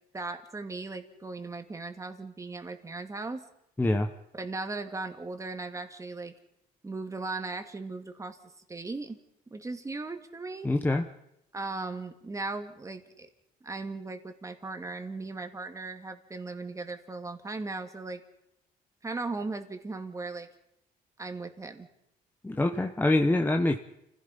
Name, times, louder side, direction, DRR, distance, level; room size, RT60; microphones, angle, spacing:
voice 1, 0.1-3.5 4.4-6.3 6.8-8.4 8.7-9.2 9.5-10.7 11.5-13.3 13.6-18.2 19.0-20.5 21.2-21.9, right 3 dB, 20° right, 6 dB, 2.3 m, -37 dB
voice 2, 3.8-4.1 10.6-11.0 22.4-23.8, left 2 dB, 10° left, 3 dB, 1.2 m, -25 dB
29.5 x 16.0 x 5.5 m, 0.81 s
cardioid pair, 110°, 17 cm